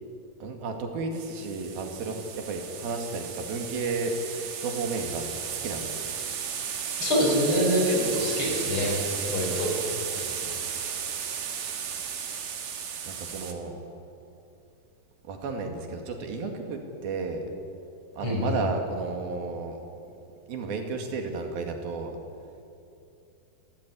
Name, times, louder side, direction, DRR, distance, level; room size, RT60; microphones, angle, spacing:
voice 1, 0.4-6.0 9.1-9.8 10.1-10.5 13.1-13.8 15.2-17.4 18.1-19.8 20.5-22.2, right 3 dB, 75° right, 4 dB, 4.0 m, -33 dB
sound 1, 1.1-13.5, right 7 dB, 55° right, 2.6 m, -34 dB
voice 2, 7.0-9.7 18.2-18.6, equal, 35° left, -1 dB, 5.8 m, -25 dB
29.0 x 14.0 x 9.8 m, 2.6 s
omnidirectional pair, 4.3 m